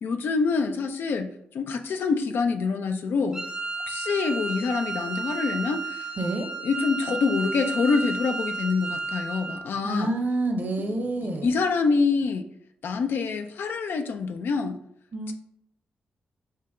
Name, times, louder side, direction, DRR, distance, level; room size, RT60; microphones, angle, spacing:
voice 1, 0.0-3.4 3.9-6.1 6.6-10.1 11.2-12.5 12.8-14.8 15.3-15.4, left 4 dB, 70° left, 7 dB, 0.4 m, -26 dB
Wind instrument woodwind instrument, 3.3-9.7, right 3 dB, 15° right, 0.7 m, -32 dB
voice 2, 6.2-6.5 9.8-11.5 15.1-15.3, right 2 dB, 50° right, 4 dB, 0.9 m, -28 dB
5.5 x 2.2 x 3.6 m, 0.71 s
supercardioid pair, 55°, 4 cm